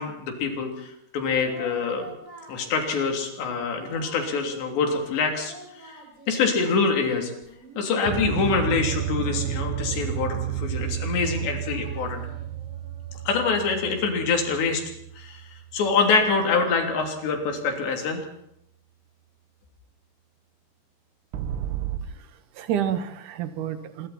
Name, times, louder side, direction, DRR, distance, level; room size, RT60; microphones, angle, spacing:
voice 1, 0.0-2.1 2.5-6.0 6.3-7.3 7.8-12.2 13.3-14.8 15.2-15.4 15.7-18.3, left 4 dB, 70° left, 3 dB, 5.4 m, -25 dB
Singing, 1.2-3.1 3.4-4.7 5.1-6.8 7.2-10.1 10.6-13.3, right 1 dB, 10° right, 6.9 m, -46 dB
sound 1, 8.1-16.4 21.3-22.0, right 11 dB, 80° right, 3.9 m, -32 dB
voice 2, 22.1-24.1, right 9 dB, 60° right, 9 dB, 2.4 m, -30 dB
26.0 x 22.5 x 4.4 m, 0.78 s
omnidirectional pair, 5.3 m